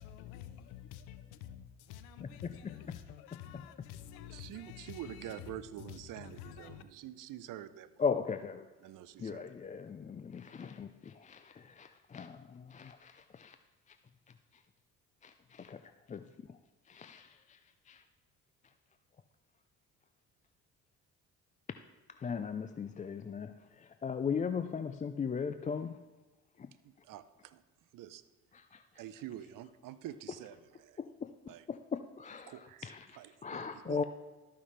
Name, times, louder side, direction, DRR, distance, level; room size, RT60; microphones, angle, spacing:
voice 1, 0.0-6.8, left 10 dB, 80° left, 0.7 m, -49 dB
voice 2, 2.2-3.0 3.3-3.9 8.0-8.7 9.2-13.6 13.9-14.0 14.5-14.6 15.2-16.6 16.9-17.6 17.9-18.0 22.2-26.0 26.6-26.7 28.5-28.8 31.0-34.0, left 6 dB, 20° left, 0.4 m, -39 dB
voice 3, 4.3-8.0 8.8-9.7 26.8-27.6 27.9-28.2 28.9-31.0 31.5-31.7 32.5-34.0, right 12 dB, 60° right, 0.7 m, -47 dB
13.5 x 5.7 x 3.3 m
hypercardioid pair, 60°, 36 cm